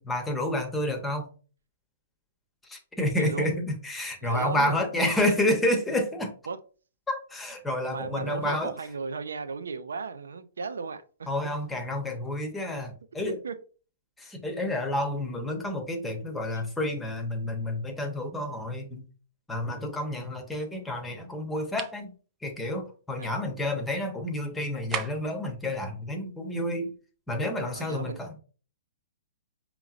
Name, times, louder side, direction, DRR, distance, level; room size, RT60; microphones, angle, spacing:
voice 1, 0.1-1.3 2.6-6.3 7.1-8.7 11.3-13.4 14.2-19.0 19.5-22.1 22.4-26.9 27.3-28.3, left 1 dB, 10° left, 0.9 m, -29 dB
voice 2, 3.2-3.5 4.2-4.8 5.1-5.4 6.5-6.6 7.8-11.0 13.4-13.5 14.6-14.7 23.2-23.4 27.7-28.2, right 5 dB, 85° right, 0.5 m, -35 dB
sound 1, 21.8-22.0 24.9-25.4, right 9 dB, 25° right, 0.4 m, -34 dB
5.1 x 2.9 x 2.4 m
hypercardioid pair, 135°, 0 cm